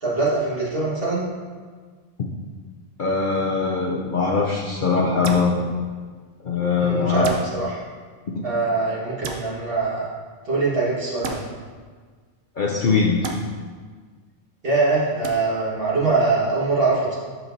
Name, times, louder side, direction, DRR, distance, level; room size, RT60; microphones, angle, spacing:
voice 1, 0.0-1.3 6.8-7.8 8.4-10.1 10.4-11.4 14.6-17.2, right 3 dB, 50° right, -7 dB, 1.9 m, -23 dB
voice 2, 3.0-5.7 6.4-7.3 8.4-8.5 12.6-13.3, left 4 dB, 50° left, -3 dB, 0.7 m, -21 dB
sound 1, 5.2-5.5 7.2-7.4 9.2-9.4 11.2-11.4 13.2-13.4 15.2-15.3, right 4 dB, 75° right, 1.0 m, -29 dB
12.5 x 4.5 x 2.7 m, 1.5 s
omnidirectional pair, 1.3 m